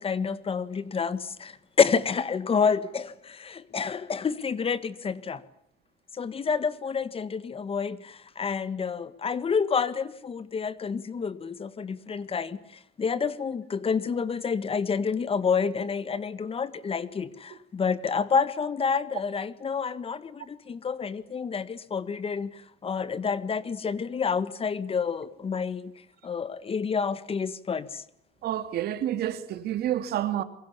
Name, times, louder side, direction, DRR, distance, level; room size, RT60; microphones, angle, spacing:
voice 1, 0.0-5.4 6.1-25.9 26.2-28.0, left 6 dB, 35° left, 1.7 m, -29 dB
voice 2, 28.4-30.4, right 12 dB, 70° right, 2.6 m, -29 dB
29.0 x 23.5 x 7.1 m
cardioid pair, 110°, 17 cm